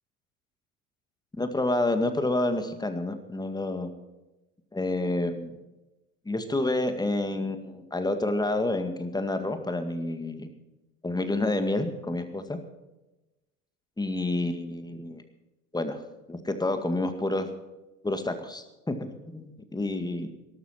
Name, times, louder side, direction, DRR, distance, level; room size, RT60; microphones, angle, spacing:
voice 1, 1.4-3.9 4.7-5.6 6.3-10.5 11.0-12.6 14.0-15.2 15.7-16.0 16.3-17.5 18.0-20.3, left 2 dB, 10° left, 8 dB, 1.9 m, -29 dB
19.0 x 12.5 x 4.4 m, 1.0 s
figure-of-eight pair, 70°, 45 cm